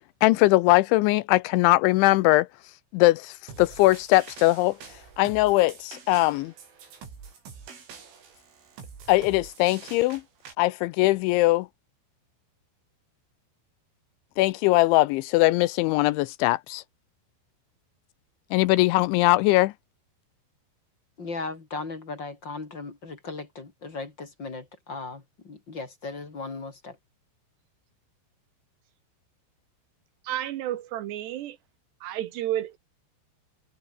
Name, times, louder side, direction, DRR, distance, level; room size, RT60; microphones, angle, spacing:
voice 1, 0.2-2.5 2.9-4.8 5.2-6.5 9.1-10.2 10.6-11.7 14.4-16.8 18.5-19.7, left 19 dB, 85° left, 2.9 m, -21 dB
sound 1, 3.5-10.5, right 6 dB, 90° right, 8.8 m, -46 dB
voice 2, 21.2-27.0, left 3 dB, 30° left, 2.8 m, -37 dB
voice 3, 30.2-31.6 32.0-32.8, right 13 dB, 70° right, 3.0 m, -31 dB
omnidirectional pair, 5.6 m